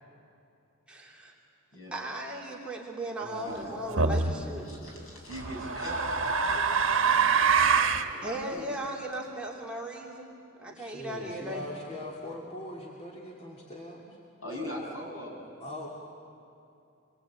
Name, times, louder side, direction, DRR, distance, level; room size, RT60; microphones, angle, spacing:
voice 1, 0.9-1.3 1.9-4.7 8.2-10.3 10.6-11.6, right 1 dB, 5° right, -3 dB, 2.9 m, -37 dB
voice 2, 3.2-4.4 4.7-5.1 10.6-14.2 15.6-15.9, left 1 dB, 30° left, -2 dB, 2.6 m, -42 dB
sound 1, 4.0-4.3 5.4-8.1, right 5 dB, 70° right, 1.4 m, -25 dB
voice 3, 4.6-8.7 11.6-11.8 14.4-15.5, equal, 80° left, -1 dB, 6.9 m, -42 dB
26.0 x 22.5 x 8.6 m, 2.7 s
head